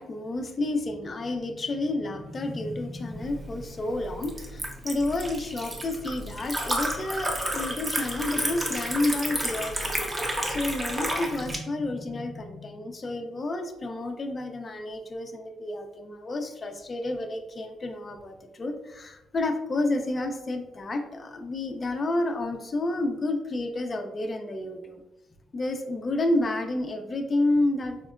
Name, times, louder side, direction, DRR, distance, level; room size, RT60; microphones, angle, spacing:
voice 1, 0.0-10.0 10.5-25.0 25.5-28.0, left 2 dB, 35° left, 5 dB, 0.4 m, -30 dB
Liquid, 3.2-11.6, right 1 dB, 20° right, 0.6 m, -31 dB
4.2 x 2.0 x 2.4 m, 0.94 s
cardioid pair, 90°, 0 cm